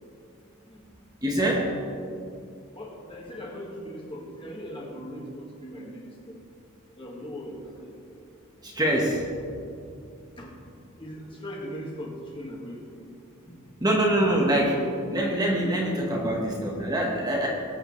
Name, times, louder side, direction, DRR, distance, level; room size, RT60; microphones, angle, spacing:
voice 1, 1.2-1.8 8.6-9.4 13.8-17.5, right 1 dB, 20° right, -2 dB, 1.3 m, -24 dB
voice 2, 2.7-6.4 7.0-7.9 10.4-10.5 11.0-13.0 13.5-13.6 16.2-16.3, equal, 25° left, -2 dB, 1.8 m, -39 dB
19.5 x 8.1 x 3.2 m, 2.5 s
head